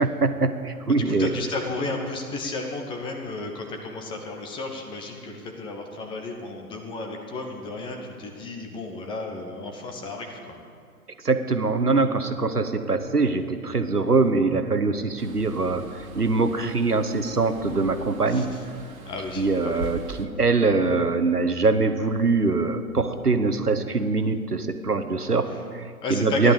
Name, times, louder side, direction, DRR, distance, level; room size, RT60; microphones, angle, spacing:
voice 1, 0.0-1.3 11.2-18.5 19.4-26.5, right 3 dB, 85° right, 9 dB, 1.2 m, -23 dB
voice 2, 1.1-10.5 18.3-18.4 19.0-19.8 26.0-26.5, left 3 dB, 10° left, 3 dB, 1.0 m, -33 dB
sound 1, 15.2-20.3, right 1 dB, 60° right, 1.8 m, -41 dB
14.5 x 11.0 x 6.9 m, 2.2 s
figure-of-eight pair, 120°, 45 cm